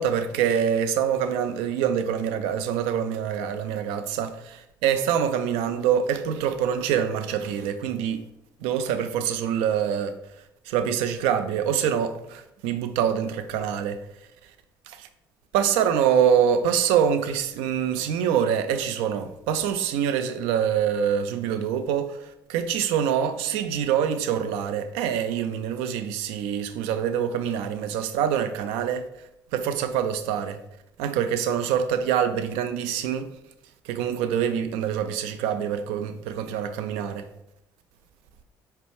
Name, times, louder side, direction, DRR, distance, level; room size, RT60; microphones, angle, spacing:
voice 1, 0.0-8.3 8.6-10.1 10.7-14.0 14.9-15.1 15.5-29.1 29.5-30.6 31.0-33.3 33.8-37.3, right 8 dB, 60° right, 0.4 m, -25 dB
4.3 x 2.4 x 3.2 m
figure-of-eight pair, 50°, 11 cm